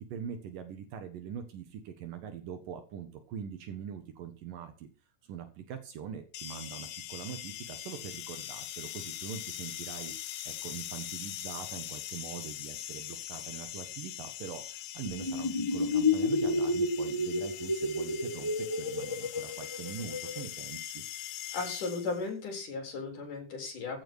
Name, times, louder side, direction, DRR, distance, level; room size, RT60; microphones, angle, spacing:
voice 1, 0.1-4.9 5.2-21.0, right 8 dB, 75° right, 7 dB, 3.1 m, -43 dB
Content warning, 6.3-22.3, left 13 dB, 85° left, 2.7 m, -42 dB
sound 1, 15.0-20.4, left 2 dB, 25° left, 0.5 m, -30 dB
voice 2, 21.5-24.0, left 4 dB, 65° left, 3 dB, 5.6 m, -36 dB
14.5 x 7.6 x 6.3 m, 0.33 s
omnidirectional pair, 4.0 m